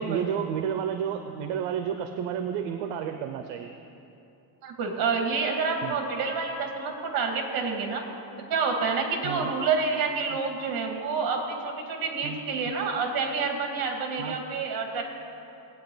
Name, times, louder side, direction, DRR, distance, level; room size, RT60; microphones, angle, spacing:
voice 1, 0.0-3.8 5.8-5.9 9.2-9.5 12.2-12.4 14.2-14.4, right 8 dB, 65° right, 7 dB, 0.7 m, -31 dB
voice 2, 4.6-8.0 8.5-15.0, right 4 dB, 45° right, 2 dB, 2.0 m, -28 dB
19.0 x 9.0 x 3.9 m, 2.8 s
cardioid pair, 160°, 50 cm